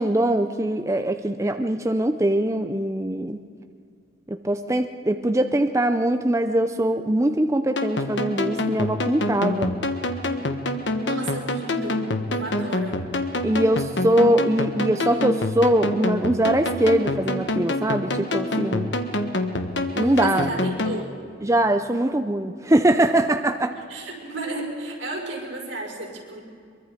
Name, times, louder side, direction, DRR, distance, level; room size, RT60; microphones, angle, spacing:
voice 1, 0.0-3.4 4.3-9.7 13.4-18.9 20.0-20.5 21.4-23.8, right 1 dB, 15° right, 7 dB, 0.6 m, -22 dB
sound 1, 7.8-21.0, left 2 dB, 70° left, 1.3 m, -26 dB
voice 2, 11.0-12.1 12.3-13.0 20.0-21.2 23.9-26.4, right 2 dB, 80° right, -1 dB, 5.3 m, -33 dB
23.5 x 23.0 x 5.1 m, 2.3 s
head